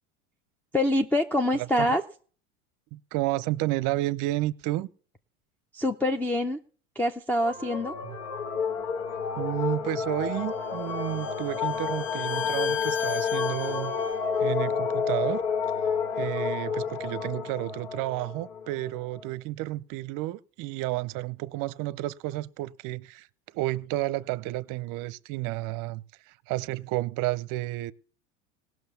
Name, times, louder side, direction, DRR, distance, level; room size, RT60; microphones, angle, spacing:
voice 1, 0.7-2.0 5.7-6.6 7.0-8.0, left 1 dB, 5° left, 0.5 m, -25 dB
voice 2, 1.6-1.9 2.9-4.9 8.0-8.2 9.4-14.0 14.4-15.4 16.2-23.3 23.5-27.9, right 17 dB, 50° right, 0.7 m, -31 dB
sound 1, 7.4-19.3, left 6 dB, 85° left, 2.0 m, -30 dB
Bowed string instrument, 10.4-14.2, left 7 dB, 45° left, 1.3 m, -37 dB
17.5 x 6.3 x 7.0 m
hypercardioid pair, 105°, 41 cm